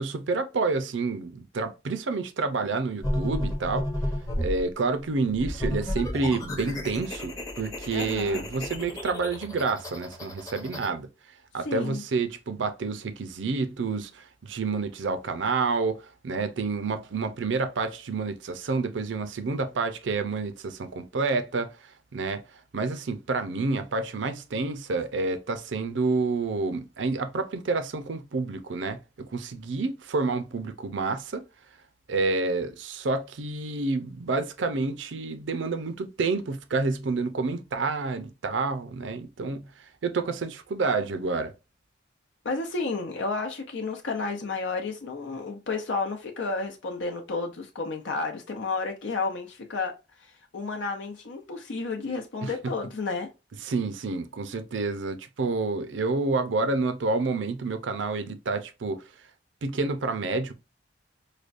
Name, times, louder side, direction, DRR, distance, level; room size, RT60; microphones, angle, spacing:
voice 1, 0.0-3.9 4.4-11.1 11.5-22.4 22.7-31.4 32.1-41.5 52.4-52.5 53.6-59.0 59.6-60.5, right 3 dB, 85° right, 0.5 m, -29 dB
sound 1, 3.0-4.6 5.3-10.9, left 1 dB, 20° left, 0.7 m, -32 dB
voice 2, 7.9-8.4 11.7-12.0 42.4-49.9 50.2-53.3, left 3 dB, 85° left, 0.7 m, -31 dB
4.9 x 2.2 x 2.5 m
head